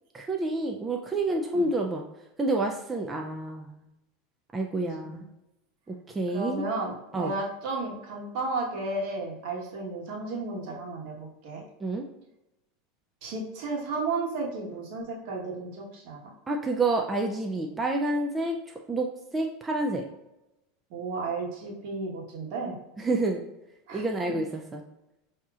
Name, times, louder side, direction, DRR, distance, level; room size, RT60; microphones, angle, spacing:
voice 1, 0.1-2.0 2.4-3.8 4.5-5.2 5.9-6.7 7.1-7.3 11.8-12.0 16.5-18.6 18.9-20.0 23.0-23.4 23.9-24.8, right 2 dB, 15° right, 1 dB, 0.4 m, -28 dB
voice 2, 6.3-11.6 13.2-16.2 20.9-22.7 23.9-24.0, right 3 dB, 60° right, -1 dB, 1.2 m, -33 dB
5.9 x 2.8 x 2.4 m, 0.90 s
supercardioid pair, 110°, 0 cm